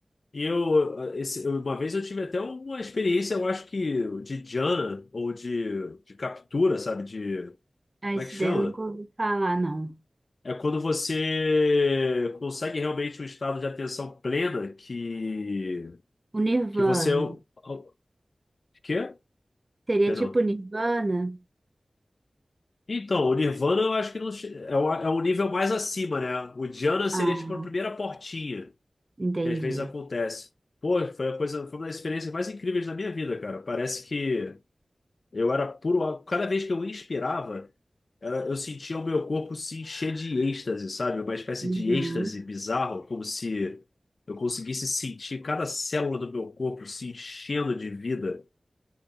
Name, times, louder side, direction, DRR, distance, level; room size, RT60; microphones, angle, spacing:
voice 1, 0.3-7.5 8.1-8.8 10.4-16.0 16.8-17.9 18.8-19.1 20.1-20.4 22.9-28.7 29.4-30.5 30.8-34.6 35.3-37.7 38.2-43.8 44.3-48.4, left 3 dB, 60° left, 0.4 m, -29 dB
voice 2, 8.0-9.9 16.3-17.3 19.9-21.4 27.1-27.7 29.2-29.9 41.6-42.3, right 2 dB, 35° right, 0.7 m, -27 dB
6.6 x 5.1 x 2.9 m
wide cardioid pair, 70°, 0 cm